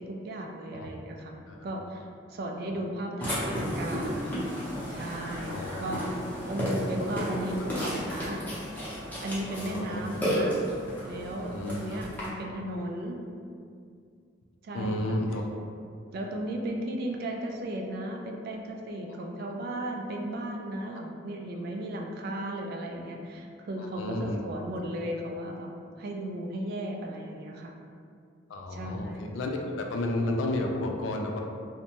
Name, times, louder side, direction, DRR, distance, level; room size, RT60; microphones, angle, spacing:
voice 1, 0.0-2.0 2.3-4.3 4.9-6.1 6.5-8.5 9.2-10.6 11.0-13.2 14.6-15.2 16.1-25.7 26.0-27.7 28.7-29.2, right 1 dB, 55° right, 2 dB, 0.3 m, -35 dB
Burping eructation, 3.2-12.3, equal, 10° left, 0.6 m, -33 dB
voice 2, 5.5-5.9 7.7-7.9 9.5-10.0 11.5-12.0 14.7-15.4 23.8-24.6 28.5-29.5 29.8-31.4, left 1 dB, 85° left, 2 dB, 0.3 m, -32 dB
2.5 x 2.1 x 2.9 m, 2.3 s
head